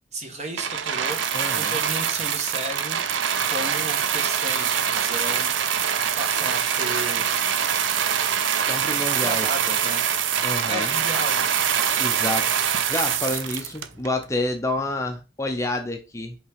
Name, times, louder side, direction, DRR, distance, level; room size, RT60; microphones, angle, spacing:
voice 1, 0.1-5.5 6.1-7.3 9.2-10.0 10.6-11.5, right 1 dB, 35° right, 1.4 m, -33 dB
sound 1, 0.6-14.2 15.0-15.1, right 8 dB, 85° right, 0.6 m, -24 dB
voice 2, 1.3-1.8 8.7-9.5 10.4-10.9 12.0-16.4, left 1 dB, 15° left, 0.6 m, -29 dB
5.6 x 3.6 x 5.1 m
head